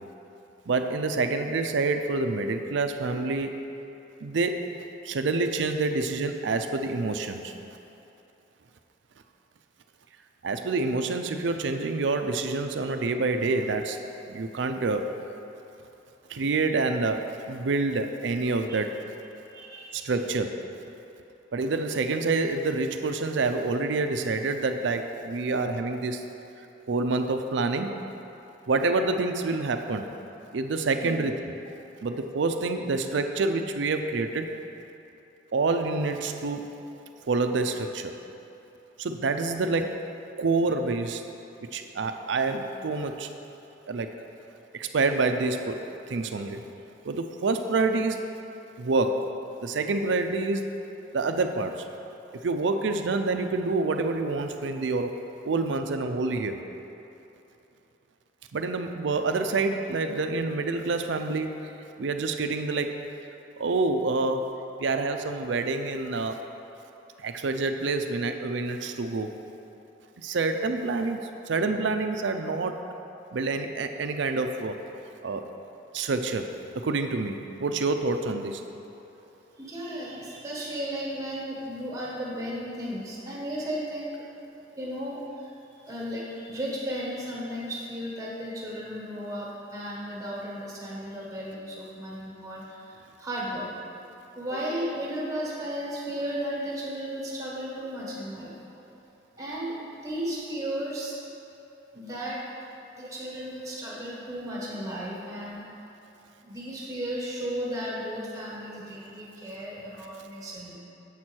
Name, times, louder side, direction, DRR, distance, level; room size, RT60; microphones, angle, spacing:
voice 1, 0.7-3.6 4.2-4.6 5.0-7.5 10.4-14.0 14.3-15.1 16.3-18.9 19.9-20.5 21.5-26.2 26.9-27.9 28.7-30.1 30.5-31.3 32.0-34.5 35.5-36.7 37.3-38.1 39.0-39.9 40.4-41.2 41.7-43.3 43.9-44.1 44.7-45.8 46.1-46.6 47.0-48.2 48.8-49.3 49.6-50.6 51.1-51.8 52.4-55.2 55.4-56.6 58.5-61.5 62.0-62.9 63.6-64.5 64.8-66.4 67.2-69.3 70.2-71.2 71.5-72.8 73.3-74.8 75.2-75.5 75.9-76.5 76.7-78.6, right 3 dB, 75° right, 6 dB, 0.5 m, -27 dB
voice 2, 19.5-19.9 31.0-31.2 79.1-79.2 79.6-84.3 84.8-93.7 94.3-98.6 99.4-101.2 101.9-102.5 102.9-105.6 106.4-110.8, equal, 15° right, -4 dB, 1.3 m, -34 dB
7.4 x 4.4 x 6.2 m, 2.9 s
head